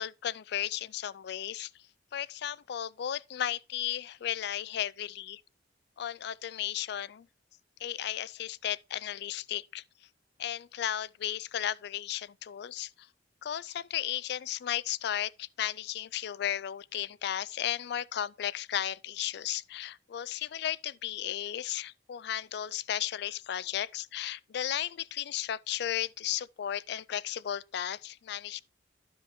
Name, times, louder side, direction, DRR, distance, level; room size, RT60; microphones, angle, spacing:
voice 1, 0.0-1.7 2.1-5.4 6.0-7.3 7.8-9.8 10.4-13.1 13.4-28.6, left 11 dB, 65° left, 0.3 m, -34 dB
12.0 x 5.2 x 3.1 m
head